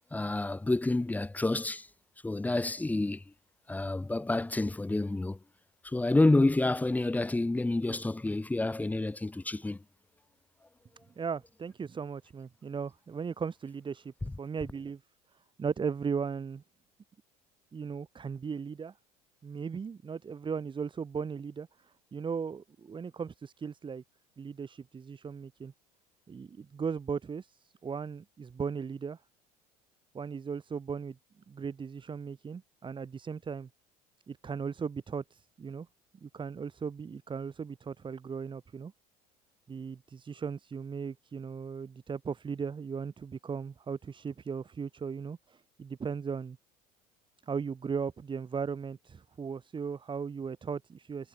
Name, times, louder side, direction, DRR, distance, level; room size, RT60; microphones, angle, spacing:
voice 1, 0.1-1.9 2.2-3.2 3.7-5.4 5.8-9.8, left 2 dB, 10° left, 0.8 m, -28 dB
voice 2, 11.2-15.0 15.6-16.6 17.7-18.9 19.4-24.0 24.4-25.7 26.3-29.2 30.1-31.2 31.5-33.7 34.3-35.9 36.2-38.9 39.7-46.6 47.4-51.3, right 6 dB, 25° right, 1.5 m, -37 dB
hypercardioid pair, 70°, 20 cm